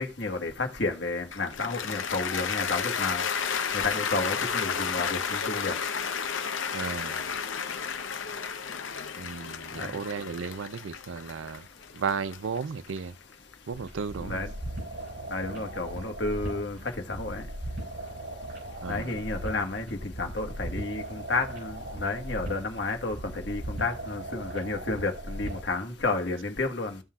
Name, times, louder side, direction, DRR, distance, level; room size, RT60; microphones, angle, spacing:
voice 1, 0.0-3.2 3.7-5.7 9.8-9.9 14.2-14.5 15.3-16.8 17.1-17.4 18.9-27.0, left 3 dB, 60° left, 1.5 m, -31 dB
Cheering / Applause, 1.3-13.5, left 6 dB, 85° left, 0.8 m, -32 dB
voice 2, 6.7-7.3 9.2-11.7 11.9-13.1 13.7-14.5 15.5-15.6 18.8-19.2, right 5 dB, 80° right, 0.5 m, -34 dB
sound 1, 13.7-25.7, right 1 dB, 60° right, 6.0 m, -38 dB
15.0 x 5.6 x 2.4 m
head